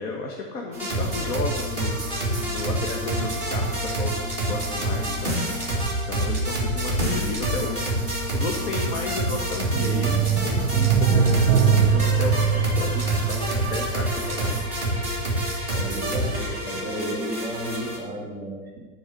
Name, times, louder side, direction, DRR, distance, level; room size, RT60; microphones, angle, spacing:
voice 1, 0.0-4.1 4.4-5.4 6.1-7.9 8.3-14.6, left 3 dB, 75° left, 0 dB, 1.6 m, -33 dB
sound 1, 0.7-18.0, right 1 dB, 15° left, 2.2 m, -27 dB
sound 2, 9.8-14.2 14.5-14.6, right 7 dB, 35° right, 1.1 m, -22 dB
voice 2, 15.7-18.8, right 1 dB, 15° right, -6 dB, 3.1 m, -33 dB
11.5 x 4.7 x 6.9 m, 1.3 s
supercardioid pair, 175°, 44 cm